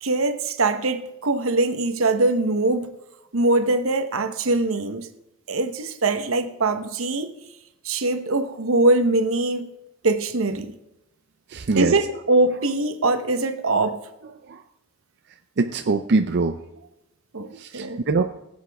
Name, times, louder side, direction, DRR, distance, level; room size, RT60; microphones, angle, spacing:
voice 1, 0.0-2.9 3.3-5.1 5.5-7.3 7.8-9.7 10.0-10.8 11.7-14.0 17.3-18.0, right 2 dB, 80° right, 1.0 m, -22 dB
voice 2, 11.5-12.0 14.5-14.6 15.6-16.6 17.5-18.2, right 3 dB, 55° right, 0.5 m, -23 dB
18.5 x 8.2 x 3.5 m
head